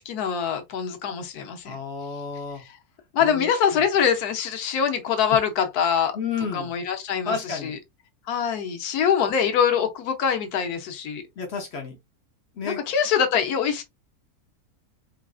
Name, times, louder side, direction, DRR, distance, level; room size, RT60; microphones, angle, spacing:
voice 1, 0.0-1.8 3.1-6.2 6.5-7.8 8.3-11.2 12.6-13.8, left 7 dB, 85° left, 1.3 m, -24 dB
voice 2, 1.6-2.6 3.2-3.8 6.1-6.7 7.2-7.7 11.4-12.0 12.6-12.8, left 5 dB, 55° left, 0.9 m, -31 dB
4.0 x 2.4 x 2.3 m
omnidirectional pair, 1.6 m